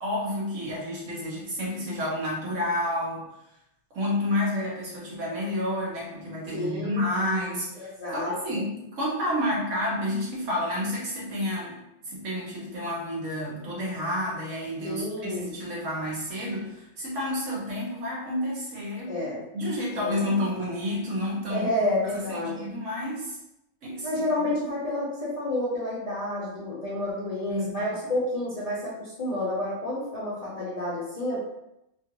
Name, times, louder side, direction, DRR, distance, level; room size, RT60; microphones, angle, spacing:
voice 1, 0.0-3.3 3.9-11.8 12.0-19.2 19.5-21.7 22.1-23.4 23.8-24.2 27.5-27.9, left 1 dB, 70° right, -5 dB, 1.3 m, -30 dB
voice 2, 6.5-7.0 7.8-8.6 14.8-15.5 19.1-19.4 19.9-20.2 21.5-22.6 24.0-31.4, left 1 dB, 35° left, -8 dB, 0.6 m, -30 dB
2.9 x 2.5 x 2.9 m, 0.85 s
omnidirectional pair, 1.4 m